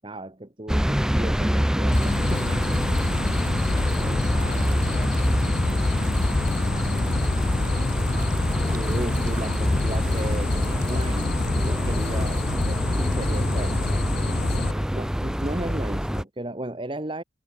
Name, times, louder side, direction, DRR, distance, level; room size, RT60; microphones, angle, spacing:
voice 1, 0.0-2.6 4.0-4.4 8.7-13.8 14.9-17.2, right 1 dB, 25° right, 1.4 m, -35 dB
sound 1, 0.7-16.2, equal, 5° right, 0.7 m, -26 dB
sound 2, 1.9-14.7, left 3 dB, 50° left, 0.7 m, -27 dB
sound 3, 1.9-14.0, right 7 dB, 40° right, 3.1 m, -49 dB
voice 2, 3.1-8.9 12.8-15.1, left 2 dB, 35° left, 3.1 m, -47 dB
head